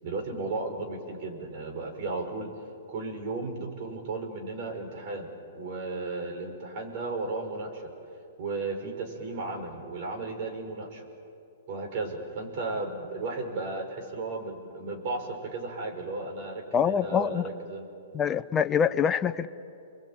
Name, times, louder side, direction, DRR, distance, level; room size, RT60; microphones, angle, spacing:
voice 1, 0.0-2.5 2.9-7.9 8.4-11.0 11.7-17.9, right 3 dB, 45° right, 4 dB, 5.3 m, -35 dB
voice 2, 16.7-17.4 18.1-19.5, left 7 dB, 20° left, 10 dB, 0.8 m, -25 dB
29.5 x 21.5 x 8.9 m, 2.6 s
hypercardioid pair, 145°, 0 cm